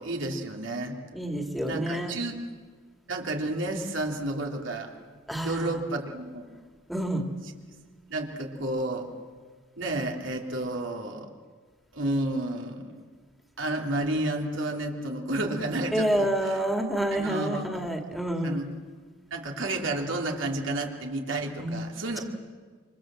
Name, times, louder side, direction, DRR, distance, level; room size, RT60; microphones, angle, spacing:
voice 1, 0.0-1.0 1.7-2.3 3.1-4.9 5.4-6.4 8.1-9.1 9.8-11.3 11.9-12.9 13.6-16.6 17.1-17.6 18.4-18.7 19.3-22.2, right 2 dB, 80° right, 1 dB, 3.2 m, -31 dB
voice 2, 1.1-2.1 5.3-5.8 6.9-7.3 15.9-18.6 21.6-21.9, right 1 dB, ahead, 3 dB, 2.1 m, -28 dB
28.0 x 25.5 x 7.7 m, 1.5 s
head